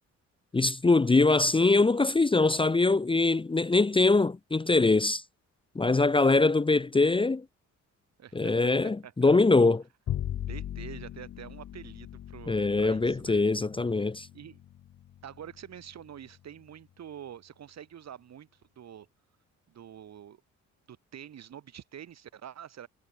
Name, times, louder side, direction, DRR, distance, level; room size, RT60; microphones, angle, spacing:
voice 1, 0.5-5.2 5.8-7.4 8.3-9.8 12.5-14.3, left 3 dB, 15° left, 0.9 m, -23 dB
voice 2, 8.2-9.3 10.3-13.4 14.3-14.6 15.2-19.1 19.7-20.4 20.9-22.9, right 9 dB, 60° right, 3.7 m, -46 dB
Bowed string instrument, 10.1-16.5, left 11 dB, 55° left, 0.9 m, -40 dB
cardioid pair, 90°, 30 cm